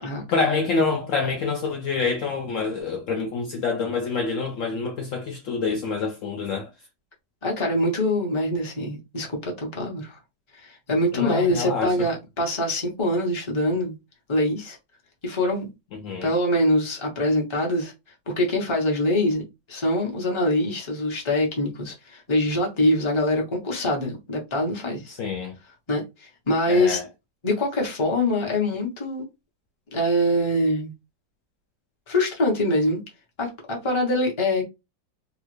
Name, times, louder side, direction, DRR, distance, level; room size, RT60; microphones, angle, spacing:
voice 1, 0.3-6.7 11.1-12.1 15.9-16.3 25.1-25.6 26.7-27.1, left 4 dB, 85° left, 0.7 m, -27 dB
voice 2, 7.4-10.2 10.6-13.9 14.3-14.8 15.2-15.7 16.2-17.9 18.3-19.4 19.7-25.2 25.9-26.0 26.5-27.0 27.4-29.3 29.9-30.9 32.1-33.0 33.4-34.7, left 1 dB, 25° left, 0.7 m, -24 dB
3.0 x 2.4 x 3.1 m
omnidirectional pair, 2.0 m